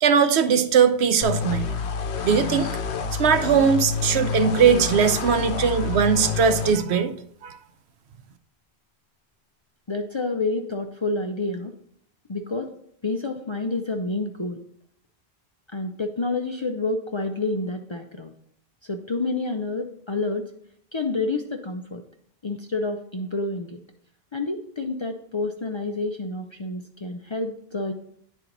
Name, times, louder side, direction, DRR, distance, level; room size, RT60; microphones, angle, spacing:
voice 1, 0.0-1.7 2.2-2.7 3.1-7.1 7.4-7.6, right 7 dB, 80° right, 10 dB, 0.9 m, -20 dB
sound 1, 1.2-6.7, left 6 dB, 90° left, 0.9 m, -28 dB
voice 2, 9.9-11.7 12.3-12.7 13.0-14.6 15.7-18.3 18.8-20.5 20.9-22.0 22.4-23.8 24.3-27.9, left 3 dB, 40° left, 3 dB, 0.4 m, -28 dB
9.9 x 4.4 x 3.9 m, 0.67 s
omnidirectional pair, 1.1 m